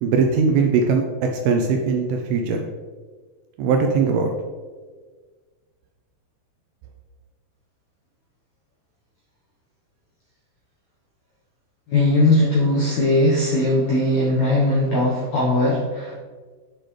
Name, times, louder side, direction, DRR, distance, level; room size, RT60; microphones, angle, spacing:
voice 1, 0.0-2.6 3.6-4.3, right 5 dB, 85° right, 3 dB, 2.3 m, -20 dB
voice 2, 11.9-16.2, left 1 dB, 75° left, -6 dB, 1.6 m, -19 dB
7.6 x 6.2 x 3.2 m, 1.4 s
omnidirectional pair, 4.9 m